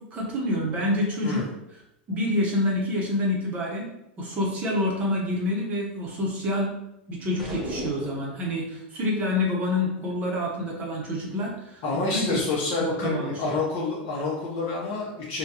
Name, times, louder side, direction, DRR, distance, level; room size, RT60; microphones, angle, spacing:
voice 1, 0.1-1.4 2.1-3.9 4.2-6.7 7.1-11.8 12.1-12.5 12.8-13.5, left 1 dB, 25° right, -2 dB, 0.8 m, -27 dB
sound 1, 7.4-8.4, equal, ahead, 0.6 m, -35 dB
voice 2, 11.8-15.4, left 3 dB, 45° left, -4 dB, 0.7 m, -28 dB
3.7 x 2.2 x 2.8 m, 0.85 s
supercardioid pair, 150°, 6 cm